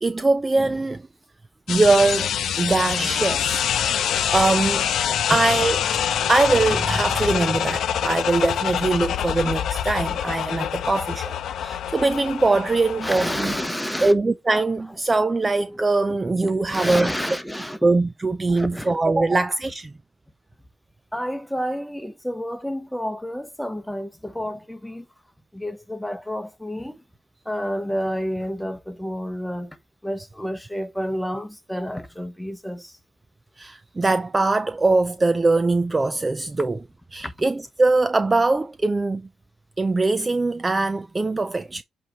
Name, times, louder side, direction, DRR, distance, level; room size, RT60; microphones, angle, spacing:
voice 1, 0.0-1.1 1.7-2.3 2.6-3.6 4.0-4.9 5.3-13.5 14.0-17.1 17.8-19.9 33.6-36.8 37.1-39.3 39.8-41.8, right 3 dB, 20° right, 0.4 m, -22 dB
sound 1, 1.7-13.7, left 9 dB, 70° left, 0.7 m, -25 dB
voice 2, 13.0-14.1 16.4-17.8 18.5-18.9 21.1-25.1 25.5-27.0 27.4-29.8 30.0-33.0 37.2-37.3, equal, 5° left, 1.1 m, -30 dB
7.9 x 3.1 x 4.5 m
cardioid pair, 100°, 0 cm